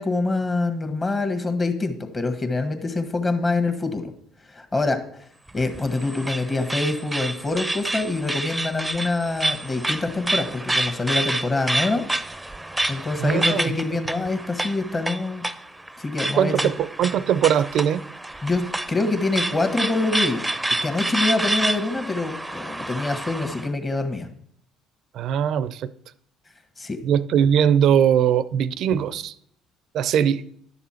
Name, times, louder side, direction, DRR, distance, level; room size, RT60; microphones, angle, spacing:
voice 1, 0.0-4.1 4.5-5.0 5.5-12.4 12.9-15.5 16.0-16.7 18.4-18.6 18.9-20.4 20.8-24.3 26.8-27.0, left 3 dB, 30° left, 1.6 m, -25 dB
sound 1, 5.5-23.7, right 1 dB, 10° right, 0.6 m, -28 dB
voice 2, 13.2-13.6 16.3-18.0 25.1-25.9 27.0-29.3 29.9-30.4, right 9 dB, 60° right, 0.5 m, -20 dB
11.0 x 6.9 x 4.4 m
hypercardioid pair, 55°, 0 cm